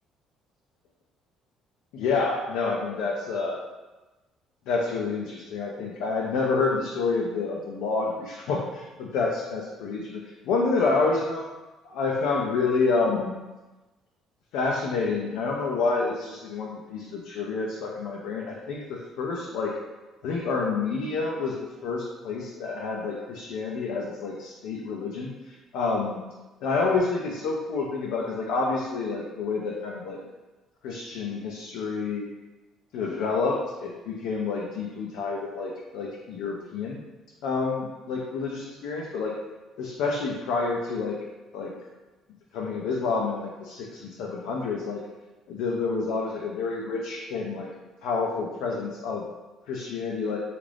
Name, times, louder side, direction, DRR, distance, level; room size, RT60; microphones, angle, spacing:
voice 1, 1.9-3.6 4.7-11.4 11.8-13.4 14.5-19.7 20.2-21.6 21.8-26.3 26.6-30.2 30.8-32.3 32.9-37.0 37.4-39.3 39.8-41.2 41.5-41.7 42.5-45.0 45.5-47.7 48.0-49.2 49.7-50.4, left 4 dB, 80° left, -2 dB, 0.4 m, -28 dB
3.6 x 2.4 x 3.3 m, 1.1 s
cardioid pair, 95°, 0 cm